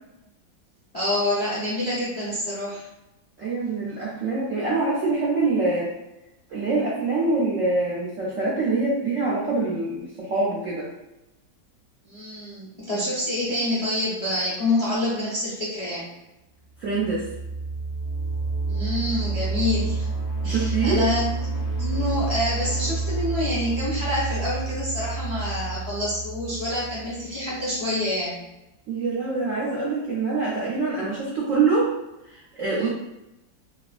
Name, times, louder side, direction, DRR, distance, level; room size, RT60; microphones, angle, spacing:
voice 1, 0.9-2.8 12.0-16.1 18.7-20.1 20.4-21.3 21.7-28.4 32.8-32.9, left 1 dB, 35° left, -8 dB, 0.6 m, -27 dB
voice 2, 3.4-5.9 6.5-10.9 16.8-17.3 20.4-21.1 28.9-31.9 32.2-32.9, right 3 dB, 70° right, -6 dB, 0.8 m, -25 dB
sound 1, 16.8-27.6, right 3 dB, 50° left, 1.3 m, -29 dB
3.1 x 2.4 x 2.4 m, 0.93 s
omnidirectional pair, 2.0 m